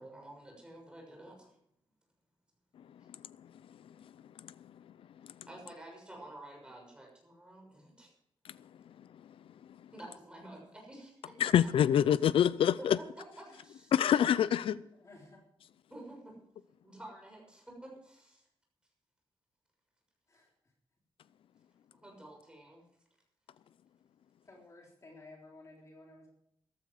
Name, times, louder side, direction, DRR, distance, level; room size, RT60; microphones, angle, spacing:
voice 1, 0.0-1.6 3.0-3.1 5.3-8.1 9.9-11.4 12.8-13.1 13.4-13.9 15.9-16.4 16.8-18.5 22.0-22.8, right 1 dB, 10° right, 6.4 m, -50 dB
voice 2, 2.8-4.9 5.2-5.4 8.4-9.9 11.4-13.0 13.9-14.8, left 9 dB, 75° left, 0.5 m, -29 dB
voice 3, 15.0-15.4 20.3-20.5 24.5-26.3, left 2 dB, 35° left, 3.7 m, -54 dB
14.5 x 13.0 x 4.8 m
wide cardioid pair, 130°, 9 cm